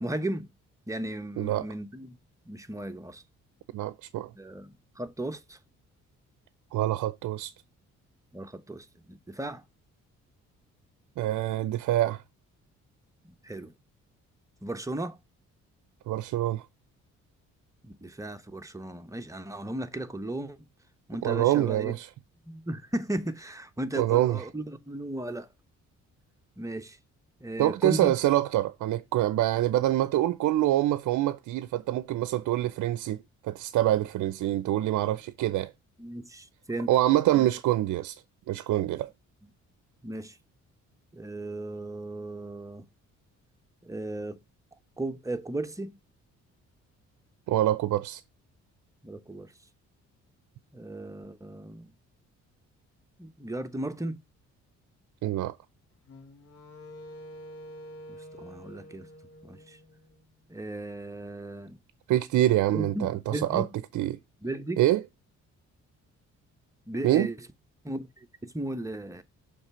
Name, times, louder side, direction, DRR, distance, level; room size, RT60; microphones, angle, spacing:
voice 1, 0.0-0.5 0.9-2.1 2.5-3.2 4.4-5.6 8.3-9.6 13.2-13.7 14.6-15.2 17.8-20.6 21.1-21.9 22.5-25.5 26.6-27.0 27.4-28.1 36.0-36.9 37.3-37.5 40.0-40.4 41.1-42.8 43.8-44.4 45.0-46.0 49.0-49.5 50.7-51.9 53.2-54.2 58.4-59.1 59.4-59.8 60.5-61.8 62.7-63.7 64.4-64.8 66.9-67.4 67.8-69.2, right 1 dB, 10° right, 0.9 m, -35 dB
voice 2, 1.4-1.7 3.7-4.3 6.7-7.5 11.2-12.2 16.1-16.6 21.2-22.1 24.0-24.5 27.6-33.2 33.4-35.7 36.9-38.2 38.5-39.1 47.5-48.2 55.2-55.6 62.1-63.7 63.9-64.2 64.8-65.0 67.0-67.3, right 14 dB, 75° right, 0.6 m, -25 dB
Wind instrument woodwind instrument, 56.0-60.3, equal, 50° left, 1.9 m, -47 dB
6.5 x 3.3 x 5.5 m
cardioid pair, 90°, 30 cm